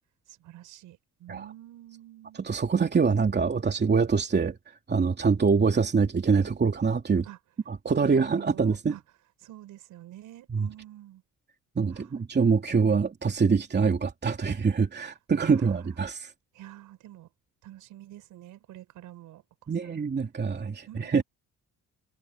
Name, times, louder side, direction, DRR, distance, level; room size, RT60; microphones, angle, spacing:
voice 1, 0.3-2.5 7.2-7.4 8.0-9.0 9.4-11.2 11.9-12.1 15.0-15.9 16.5-17.3 17.6-20.1 20.9-21.2, right 14 dB, 90° right, 6.4 m, -48 dB
voice 2, 2.4-4.6 4.9-7.3 7.7-8.9 10.5-10.7 11.8-16.3 19.7-21.2, right 5 dB, 35° right, 2.9 m, -24 dB
cardioid pair, 90°, 30 cm